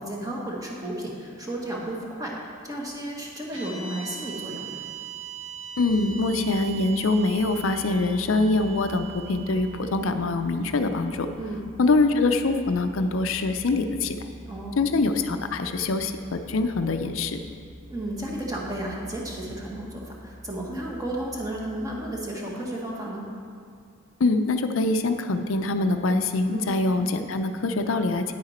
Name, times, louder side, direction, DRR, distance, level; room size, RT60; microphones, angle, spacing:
voice 1, 0.0-4.8 11.3-11.7 14.5-14.8 17.9-23.3 26.5-26.7, right 1 dB, 20° right, -3 dB, 1.5 m, -33 dB
sound 1, 3.5-11.8, right 7 dB, 70° right, 1.9 m, -41 dB
voice 2, 5.8-11.3 11.8-14.2 14.8-17.4 24.2-28.3, left 3 dB, 80° left, 7 dB, 0.5 m, -24 dB
sound 2, 5.8-22.2, right 1 dB, ahead, 2.1 m, -46 dB
9.4 x 8.8 x 4.3 m, 2.2 s
head